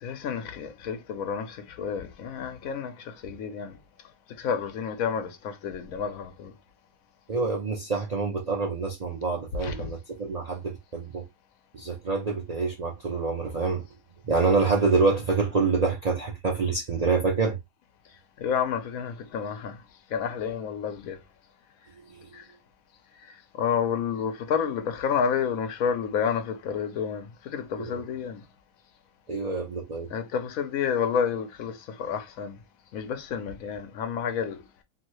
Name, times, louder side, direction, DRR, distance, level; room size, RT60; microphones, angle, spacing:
voice 1, 0.0-3.8 4.4-6.5 9.6-9.9 18.4-19.8 20.1-21.2 22.3-22.4 23.5-28.4 30.1-32.6 32.9-34.6, left 7 dB, 85° left, 1.1 m, -30 dB
voice 2, 7.3-11.2 11.7-13.8 14.2-17.6 27.8-27.9 29.3-30.1, right 4 dB, 45° right, 0.5 m, -26 dB
2.8 x 2.7 x 3.0 m
omnidirectional pair, 1.4 m